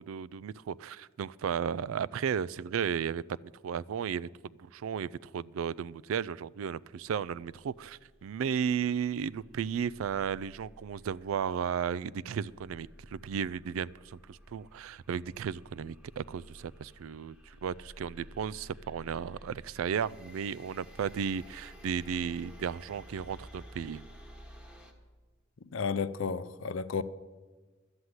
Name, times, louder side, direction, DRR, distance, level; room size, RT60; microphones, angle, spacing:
voice 1, 0.0-3.2 3.6-4.3 4.6-24.0, right 7 dB, 85° right, 0.3 m, -34 dB
sound 1, 7.3-24.9, equal, 5° right, 1.1 m, -53 dB
voice 2, 25.7-27.0, left 5 dB, 70° left, 0.5 m, -32 dB
11.5 x 7.9 x 9.6 m
head